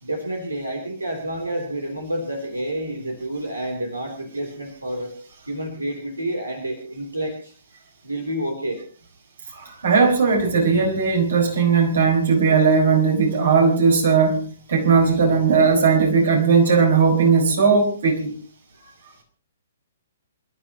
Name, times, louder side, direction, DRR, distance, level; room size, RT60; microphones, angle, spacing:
voice 1, 0.0-5.1 5.5-7.5 8.0-8.8, right 1 dB, 90° right, 3.3 m, -29 dB
voice 2, 9.5-18.3, right 5 dB, 65° right, 5.5 m, -18 dB
27.5 x 13.0 x 3.0 m
figure-of-eight pair, 125°, 0 cm